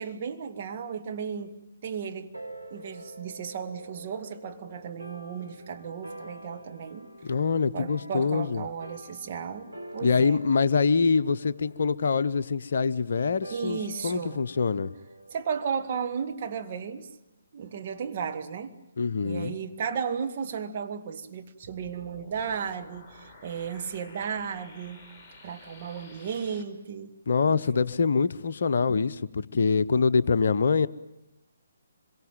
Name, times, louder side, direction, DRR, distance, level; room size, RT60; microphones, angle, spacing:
voice 1, 0.0-1.6 1.8-2.3 2.7-7.1 7.7-10.4 13.5-14.4 15.3-17.1 17.5-18.8 19.2-25.0 25.4-27.2 27.5-27.8, right 6 dB, 40° right, 2.0 m, -34 dB
sound 1, 2.3-17.1, right 1 dB, 85° right, 4.0 m, -47 dB
voice 2, 7.2-8.6 10.0-14.9 19.0-19.6 27.3-30.9, left 5 dB, 55° left, 0.9 m, -25 dB
sound 2, 21.6-26.6, left 3 dB, 10° left, 4.5 m, -51 dB
26.0 x 23.5 x 9.1 m
figure-of-eight pair, 140°, 0 cm